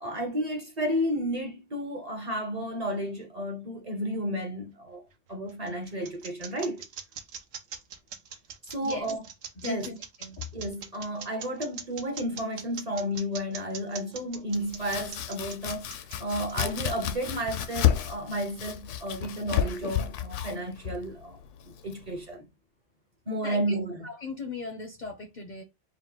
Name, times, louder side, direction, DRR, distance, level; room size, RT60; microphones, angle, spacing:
voice 1, 0.0-6.8 8.6-9.3 9.6-9.9 10.5-21.4 21.6-22.5 23.3-24.1, equal, 35° right, 0.8 m, -32 dB
sound 1, 5.1-17.1, right 7 dB, 80° right, 1.1 m, -41 dB
voice 2, 9.6-10.4 23.4-23.8 24.0-25.6, left 4 dB, 50° left, 0.6 m, -38 dB
Domestic sounds home sounds, 14.5-22.3, left 10 dB, 75° left, 0.9 m, -32 dB
4.7 x 2.1 x 3.7 m
omnidirectional pair, 1.3 m